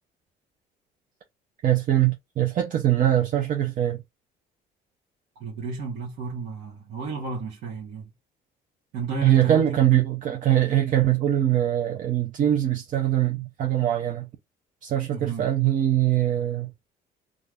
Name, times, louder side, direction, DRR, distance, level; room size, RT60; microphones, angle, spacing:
voice 1, 1.6-4.0 9.2-14.3 14.8-16.7, right 12 dB, 50° right, 0.6 m, -22 dB
voice 2, 5.4-8.1 8.9-9.9 15.1-15.5, right 4 dB, 80° right, 1.1 m, -33 dB
2.5 x 2.3 x 3.4 m
cardioid pair, 110°, 17 cm